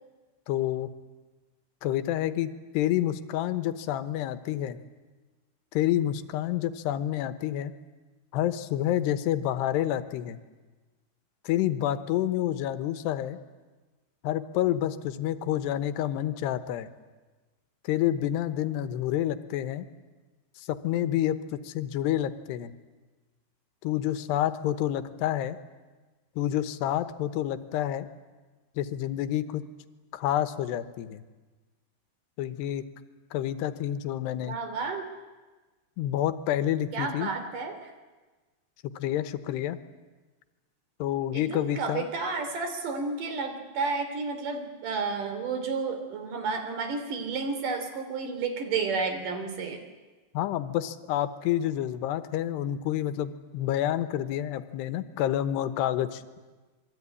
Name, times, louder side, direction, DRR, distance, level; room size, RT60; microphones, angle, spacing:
voice 1, 0.5-0.9 1.8-4.8 5.7-7.7 8.3-10.4 11.4-13.4 14.2-16.9 17.8-19.9 20.6-21.4 21.6-22.7 23.8-25.6 26.4-28.1 28.8-29.7 30.1-31.2 32.4-32.8 33.3-34.6 36.0-37.3 39.0-39.8 41.0-42.1 50.3-56.4, left 12 dB, 90° left, 12 dB, 3.2 m, -28 dB
voice 2, 34.4-35.0 36.9-37.9 41.3-49.8, right 4 dB, 55° right, 7 dB, 4.3 m, -31 dB
27.5 x 22.0 x 9.8 m, 1.3 s
omnidirectional pair, 4.7 m